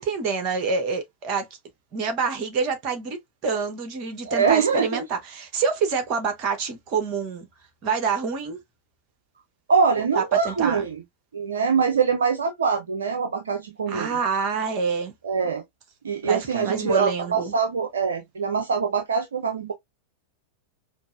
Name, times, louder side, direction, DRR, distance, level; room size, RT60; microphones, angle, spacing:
voice 1, 0.0-1.5 1.9-3.2 3.4-7.5 7.8-8.6 10.1-10.8 13.9-15.1 16.2-17.5, right 5 dB, 40° right, 1.0 m, -27 dB
voice 2, 4.2-5.0 9.7-11.0 11.3-14.2 15.2-15.6 16.0-19.7, right 6 dB, 70° right, 0.5 m, -23 dB
5.1 x 2.0 x 2.4 m
figure-of-eight pair, 90°, 0 cm